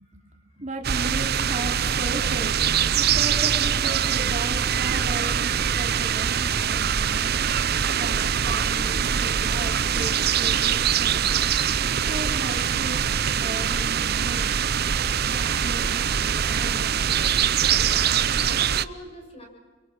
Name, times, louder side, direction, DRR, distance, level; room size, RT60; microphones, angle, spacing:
voice 1, 0.0-0.6 1.1-1.2 17.7-19.4, left 1 dB, 30° left, 2 dB, 6.8 m, -45 dB
voice 2, 0.5-2.5 2.9-7.3 8.0-11.3 12.0-14.6 15.3-17.1, right 1 dB, 40° right, 2 dB, 3.0 m, -36 dB
sound 1, 0.8-18.9, right 8 dB, 55° right, 0.7 m, -23 dB
Engine, 1.8-17.5, equal, 15° right, 3.7 m, -48 dB
28.5 x 25.0 x 6.2 m, 1.4 s
head